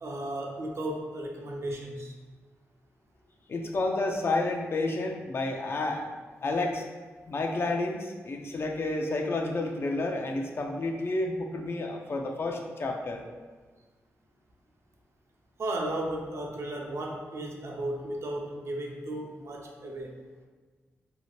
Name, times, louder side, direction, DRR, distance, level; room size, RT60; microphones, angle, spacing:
voice 1, 0.0-2.1 15.6-20.1, right 1 dB, 60° right, 0 dB, 0.5 m, -35 dB
voice 2, 3.5-6.0 6.4-6.8 7.3-13.2, left 2 dB, 50° left, 2 dB, 0.4 m, -30 dB
2.7 x 2.4 x 3.1 m, 1.4 s
cardioid pair, 65°, 5 cm